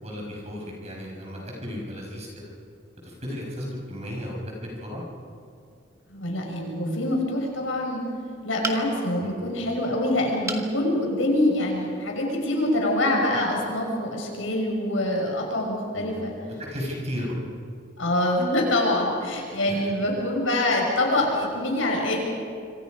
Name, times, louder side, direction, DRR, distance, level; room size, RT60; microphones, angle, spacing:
voice 1, 0.0-2.5 3.0-4.3 4.8-5.0 9.2-9.4 15.9-17.3 19.6-19.8, equal, 35° right, -2 dB, 6.3 m, -35 dB
voice 2, 6.1-8.0 8.4-16.3 18.0-22.2, left 1 dB, 80° left, 0 dB, 6.3 m, -25 dB
sound 1, 8.6-9.2 10.5-10.7 11.3-11.4 11.7-11.8, right 2 dB, 15° right, 1.6 m, -32 dB
26.5 x 26.0 x 5.3 m, 2.4 s
head